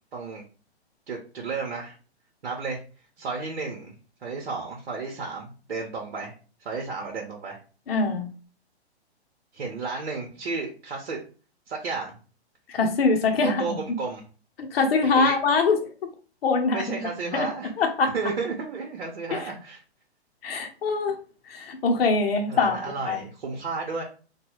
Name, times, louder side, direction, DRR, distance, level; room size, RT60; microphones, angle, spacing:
voice 1, 0.1-0.4 1.1-2.0 2.4-2.8 3.2-3.9 4.2-6.3 6.6-7.6 9.5-11.2 11.7-12.2 13.4-14.2 15.0-15.3 16.7-17.7 18.1-19.8 22.5-24.0, right 4 dB, 60° right, 0 dB, 0.9 m, -32 dB
voice 2, 7.9-8.3 12.7-13.8 14.6-15.8 16.4-17.5 17.8-18.1 19.3-19.5 20.4-21.2 21.5-22.8 23.1-23.2, left 4 dB, 60° left, 4 dB, 0.7 m, -23 dB
3.1 x 2.2 x 3.0 m, 0.36 s
figure-of-eight pair, 125°, 33 cm